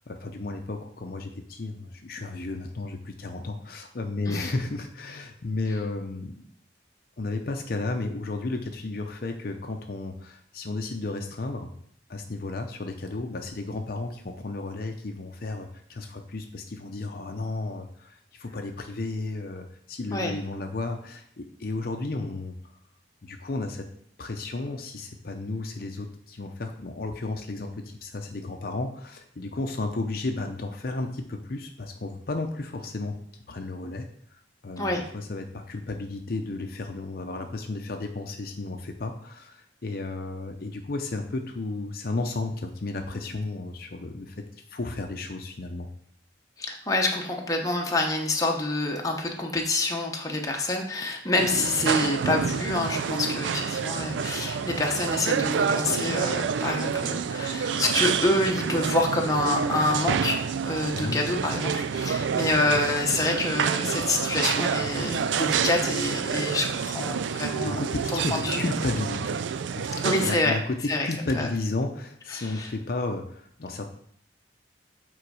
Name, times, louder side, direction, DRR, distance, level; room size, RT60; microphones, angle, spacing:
voice 1, 0.0-6.4 7.2-11.7 12.1-22.5 23.2-23.9 24.2-33.2 33.5-34.1 34.6-44.4 44.7-45.9 60.9-61.2 67.6-69.4 69.7-70.8 71.0-73.9, left 2 dB, 55° left, 4 dB, 0.6 m, -33 dB
voice 2, 46.6-67.8 68.1-68.6 70.0-70.6 70.9-71.1 71.3-71.5 72.3-72.7, left 2 dB, 20° left, 1 dB, 0.9 m, -27 dB
sound 1, 51.4-70.4, right 6 dB, 85° right, 0.4 m, -28 dB
7.7 x 3.9 x 4.8 m, 0.64 s
head